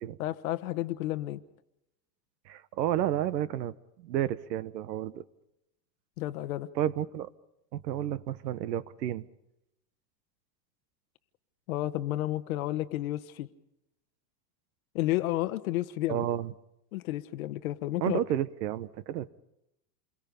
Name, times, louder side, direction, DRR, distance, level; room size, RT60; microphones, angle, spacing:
voice 1, 0.2-1.4 6.2-6.7 11.7-13.5 14.9-16.2 16.9-18.2, left 15 dB, 55° left, 12 dB, 1.2 m, -31 dB
voice 2, 2.5-5.2 6.7-7.3 7.7-9.3 16.1-16.5 18.0-19.3, right 11 dB, 80° right, 16 dB, 1.3 m, -31 dB
28.5 x 22.5 x 5.3 m, 0.86 s
supercardioid pair, 175°, 50 cm